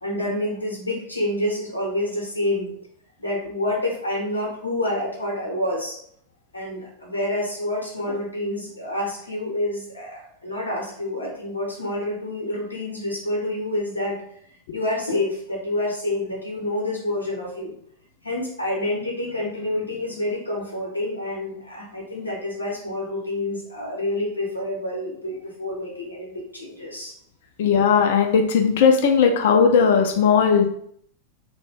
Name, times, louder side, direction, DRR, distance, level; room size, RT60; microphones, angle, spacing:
voice 1, 0.0-2.7 3.2-6.0 6.5-14.4 14.7-17.7 18.2-27.1, left 1 dB, 80° left, -3 dB, 0.7 m, -28 dB
voice 2, 27.6-30.8, left 6 dB, 55° left, 4 dB, 0.3 m, -17 dB
2.2 x 2.1 x 3.2 m, 0.67 s
figure-of-eight pair, 90°, 0 cm